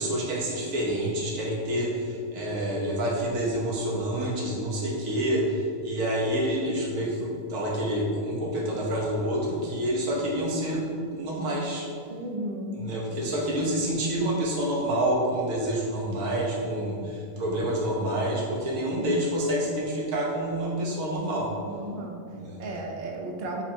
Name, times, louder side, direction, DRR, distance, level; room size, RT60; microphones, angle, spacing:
voice 1, 0.0-10.8 11.1-11.9 12.7-21.5 22.3-22.6, right 1 dB, 80° right, -4 dB, 1.3 m, -28 dB
voice 2, 12.1-12.8 19.0-19.2 21.7-22.2 22.6-23.6, right 1 dB, 60° right, 1 dB, 0.5 m, -34 dB
4.1 x 2.1 x 4.4 m, 2.3 s
omnidirectional pair, 1.4 m